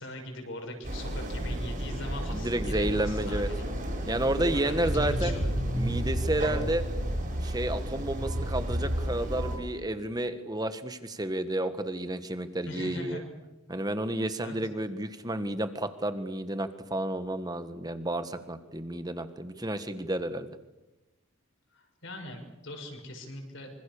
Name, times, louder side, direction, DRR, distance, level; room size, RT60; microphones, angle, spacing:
voice 1, 0.0-3.6 3.9-5.8 12.6-13.3 14.4-14.6 21.7-23.7, left 1 dB, 55° left, 3 dB, 6.8 m, -41 dB
sound 1, 0.8-9.6, equal, 40° right, 6.8 m, -31 dB
voice 2, 2.3-3.5 4.1-5.4 5.7-6.8 7.4-13.2 13.7-20.5, right 1 dB, 20° right, 10 dB, 1.5 m, -31 dB
26.5 x 26.0 x 7.0 m, 1.0 s
head